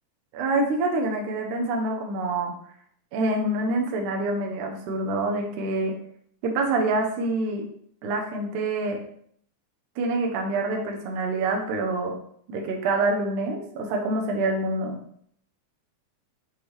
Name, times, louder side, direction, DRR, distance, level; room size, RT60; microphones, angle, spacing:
voice 1, 0.3-2.5 3.1-6.0 6.4-7.7 8.0-9.0 10.0-12.2 12.5-15.0, right 2 dB, 75° right, 2 dB, 2.2 m, -26 dB
9.6 x 3.3 x 3.2 m, 0.65 s
omnidirectional pair, 3.7 m